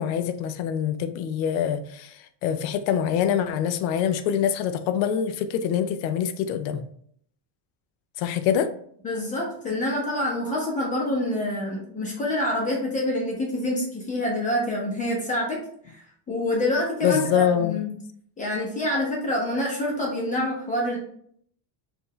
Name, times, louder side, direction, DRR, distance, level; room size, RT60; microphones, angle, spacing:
voice 1, 0.0-6.8 8.2-8.7 17.0-17.8, left 9 dB, 85° left, 10 dB, 0.6 m, -25 dB
voice 2, 9.0-17.9 18.4-21.0, left 1 dB, 15° left, -3 dB, 0.9 m, -27 dB
4.6 x 2.6 x 3.1 m, 0.64 s
cardioid pair, 165°, 49 cm